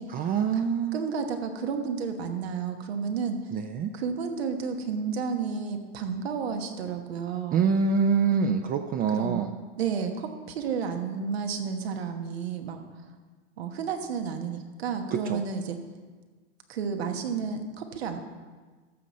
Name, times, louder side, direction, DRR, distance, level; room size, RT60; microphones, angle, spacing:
voice 1, 0.1-1.0 3.5-3.9 7.5-9.5 15.1-15.5, right 6 dB, 30° right, 6 dB, 0.4 m, -25 dB
voice 2, 0.9-3.5 3.9-7.7 9.1-9.4 9.8-12.8 13.6-15.8 16.7-18.2, right 6 dB, 85° right, 5 dB, 1.2 m, -31 dB
14.0 x 6.3 x 4.2 m, 1.4 s
hypercardioid pair, 110°, 31 cm